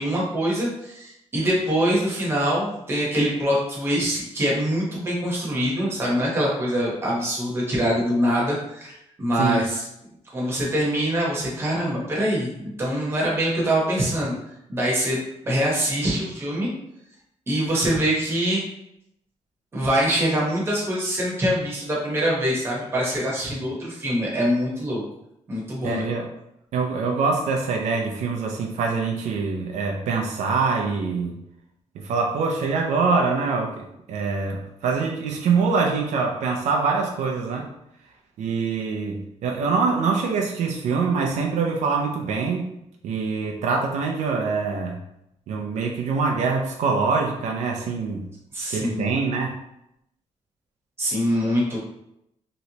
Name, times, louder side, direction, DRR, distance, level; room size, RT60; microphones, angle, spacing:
voice 1, 0.0-9.8 10.3-14.4 14.7-15.2 15.4-16.7 17.5-18.6 19.7-25.0 25.5-26.1 48.5-49.2 51.0-51.8, equal, 20° right, -4 dB, 0.9 m, -24 dB
voice 2, 25.8-26.3 26.7-31.4 31.9-37.7 38.4-42.8 43.0-45.0 45.5-48.3 48.7-49.5, right 4 dB, 75° right, 1 dB, 0.5 m, -24 dB
3.1 x 3.0 x 2.8 m, 0.81 s
wide cardioid pair, 175°, 12 cm